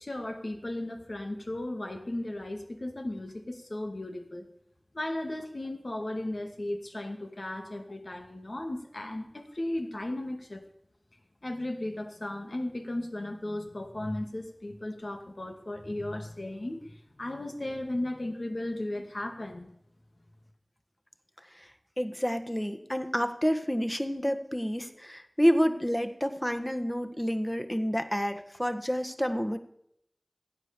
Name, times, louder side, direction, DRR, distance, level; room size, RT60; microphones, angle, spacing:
voice 1, 0.0-4.5 4.9-10.6 11.4-19.7, left 1 dB, 70° left, 4 dB, 2.3 m, -36 dB
voice 2, 22.0-29.6, equal, 15° left, 8 dB, 1.5 m, -29 dB
15.5 x 9.8 x 6.9 m, 0.73 s
wide cardioid pair, 40°, 0 cm